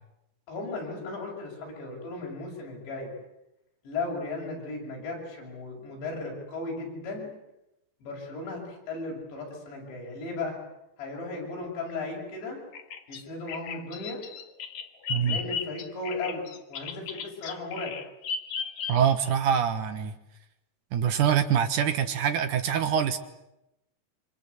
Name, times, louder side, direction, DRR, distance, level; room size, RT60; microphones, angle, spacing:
voice 1, 0.5-3.1 3.9-7.3 8.0-10.6 11.0-12.6 13.1-14.2 15.1-16.4 16.7-17.9, left 3 dB, 80° left, -1 dB, 8.9 m, -36 dB
Bird vocalization bird call bird song, 12.7-19.3, left 6 dB, 55° left, 2.2 m, -36 dB
voice 2, 18.9-20.1 20.9-23.2, right 8 dB, 65° right, 9 dB, 2.2 m, -24 dB
27.0 x 25.5 x 8.3 m, 0.89 s
omnidirectional pair, 5.1 m